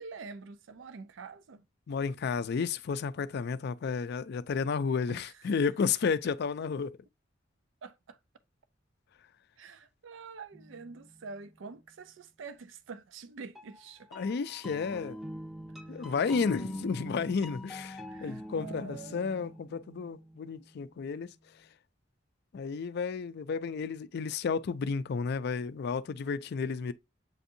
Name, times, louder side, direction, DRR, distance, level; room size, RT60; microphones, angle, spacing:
voice 1, 0.0-1.6 5.1-5.6 7.8-8.2 9.6-14.1 15.8-16.1 18.1-19.3, right 4 dB, 85° right, 0.5 m, -46 dB
voice 2, 1.9-6.9 14.1-15.2 15.9-21.3 22.5-26.9, left 5 dB, 60° left, 0.4 m, -32 dB
sound 1, 10.5-11.7 13.5-21.2, equal, ahead, 0.5 m, -44 dB
7.8 x 2.6 x 2.6 m
head